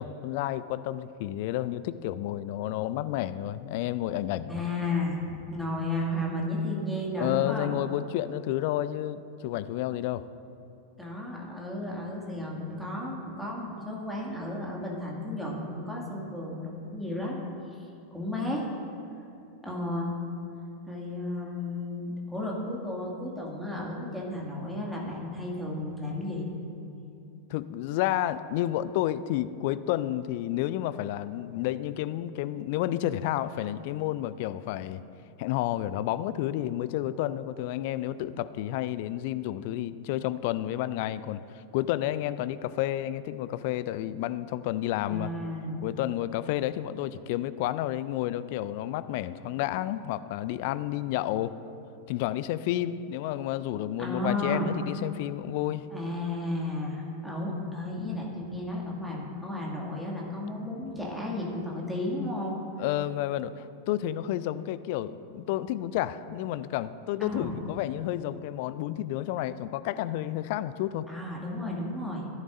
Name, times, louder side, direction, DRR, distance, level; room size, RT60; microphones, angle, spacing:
voice 1, 0.0-4.6 7.2-10.3 27.5-35.0 35.4-45.3 45.8-51.5 52.1-55.9 58.0-58.2 62.8-71.1, left 13 dB, 50° left, 15 dB, 0.3 m, -31 dB
voice 2, 4.5-7.7 11.0-17.4 18.1-18.7 19.6-20.1 20.9-26.5 45.1-45.8 54.0-54.7 55.9-62.6 67.2-67.6 71.1-72.3, left 1 dB, ahead, -4 dB, 2.2 m, -33 dB
15.5 x 10.5 x 2.6 m, 2.6 s
figure-of-eight pair, 90°, 0 cm